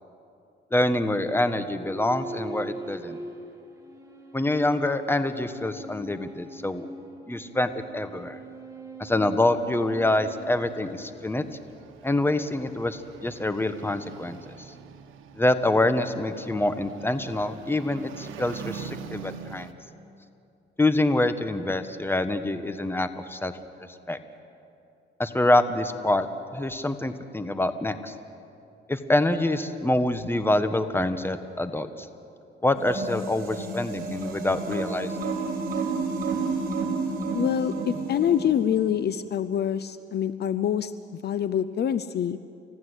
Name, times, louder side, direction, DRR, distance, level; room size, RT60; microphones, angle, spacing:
voice 1, 0.7-3.2 4.3-6.9 7.3-8.4 9.0-11.4 12.0-14.4 15.4-19.7 20.8-23.5 24.1-24.2 25.2-26.3 26.5-28.1 28.9-32.1 32.6-35.1, left 1 dB, 10° left, 10 dB, 1.4 m, -26 dB
sound 1, 1.7-11.4, right 2 dB, 15° right, 4.3 m, -42 dB
sound 2, 9.7-19.7, right 7 dB, 85° right, 1.4 m, -44 dB
sound 3, 32.7-39.0, right 3 dB, 45° right, 3.7 m, -31 dB
voice 2, 37.3-40.9 41.2-42.4, left 9 dB, 55° left, 14 dB, 0.7 m, -25 dB
29.5 x 15.0 x 8.2 m, 2.6 s
cardioid pair, 90°, 20 cm